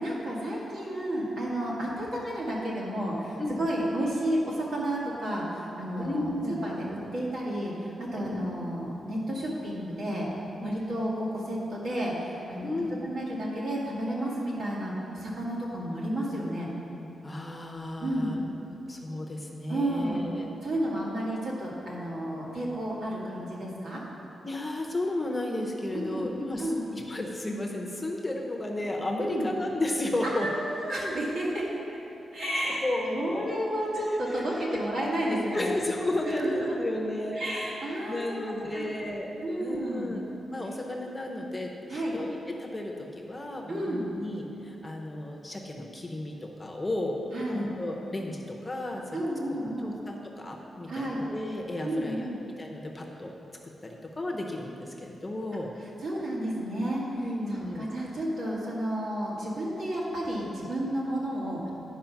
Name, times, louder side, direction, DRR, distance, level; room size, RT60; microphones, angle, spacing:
voice 1, 0.0-6.9 7.1-10.3 10.6-16.7 18.0-18.4 19.7-20.3 20.6-24.0 25.9-26.3 26.6-26.8 29.2-29.5 30.2-31.7 32.3-35.7 36.3-36.8 37.4-38.9 39.4-40.2 41.9-42.2 43.7-44.1 47.3-47.7 49.1-49.9 50.9-51.2 51.8-52.4 56.0-57.0 57.5-61.7, right 1 dB, 70° right, -5 dB, 1.9 m, -31 dB
voice 2, 6.0-6.6 8.1-8.4 10.6-10.7 12.6-13.1 17.2-18.4 18.9-20.5 24.4-30.5 32.8-33.5 34.3-34.6 35.5-37.7 38.1-39.3 39.6-40.2 40.5-47.2 47.5-49.2 49.8-52.3 52.6-53.3 53.8-55.7 57.1-57.9, left 1 dB, 15° left, 0 dB, 0.7 m, -33 dB
10.0 x 4.8 x 5.8 m, 2.9 s
wide cardioid pair, 165°, 0 cm